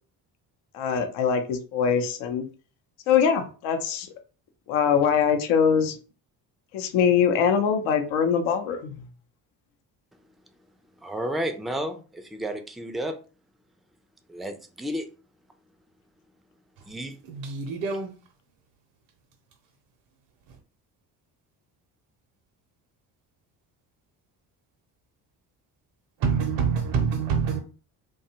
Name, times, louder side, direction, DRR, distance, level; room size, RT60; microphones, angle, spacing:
voice 1, 0.7-2.5 3.1-4.1 4.7-5.9 6.7-8.9, left 7 dB, 80° left, 0.7 m, -23 dB
voice 2, 11.0-13.2 14.3-15.1 16.9-17.2, right 1 dB, ahead, 0.3 m, -32 dB
voice 3, 17.3-18.1 26.2-27.6, right 6 dB, 65° right, 0.7 m, -26 dB
2.6 x 2.3 x 2.8 m
hypercardioid pair, 55°, 49 cm